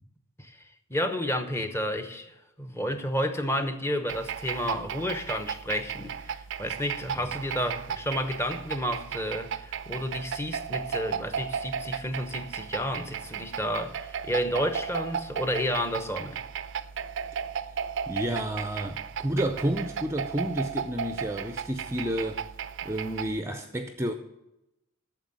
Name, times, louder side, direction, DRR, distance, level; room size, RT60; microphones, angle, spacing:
voice 1, 0.9-16.4, equal, 10° left, 0.9 m, -31 dB
bottle beatbox, 4.1-23.4, right 7 dB, 60° right, 0.5 m, -35 dB
voice 2, 18.1-22.4 22.8-24.1, right 1 dB, 10° right, 0.5 m, -30 dB
9.2 x 7.0 x 7.4 m
head